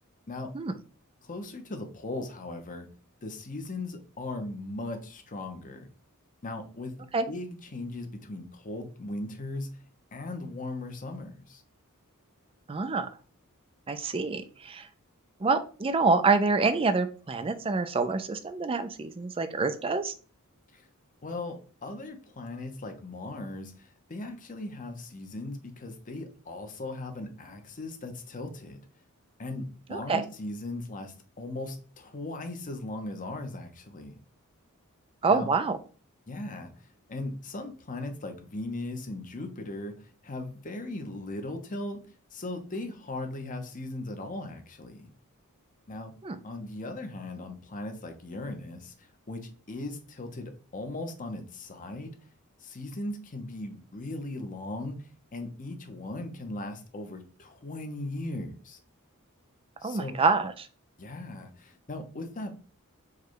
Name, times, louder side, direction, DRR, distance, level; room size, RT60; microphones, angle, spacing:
voice 1, 1.2-2.9 3.2-5.9 6.4-9.7 10.1-11.6 20.7-20.9 21.2-28.8 29.4-34.2 35.3-35.5 36.3-36.7 37.1-42.0 42.3-45.1 45.9-46.1 46.4-52.1 52.6-55.0 55.3-58.8 59.8-60.2 61.0-62.5, left 2 dB, 35° left, 5 dB, 0.8 m, -38 dB
voice 2, 12.7-13.1 13.9-14.9 15.4-20.1 29.9-30.3 35.2-35.8 46.2-46.4 59.8-60.7, right 4 dB, 25° right, 10 dB, 0.4 m, -26 dB
4.8 x 2.3 x 4.5 m, 0.38 s
head